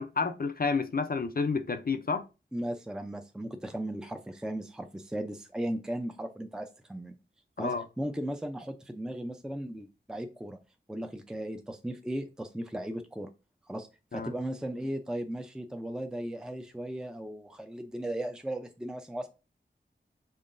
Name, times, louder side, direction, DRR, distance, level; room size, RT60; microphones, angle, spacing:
voice 1, 0.0-2.2 7.6-7.8 14.1-14.3, left 4 dB, 50° left, 0.6 m, -30 dB
voice 2, 2.5-7.1 7.6-10.6 10.9-13.3 13.7-19.3, right 1 dB, 5° right, 0.5 m, -36 dB
5.6 x 3.6 x 2.6 m
wide cardioid pair, 45°, 19 cm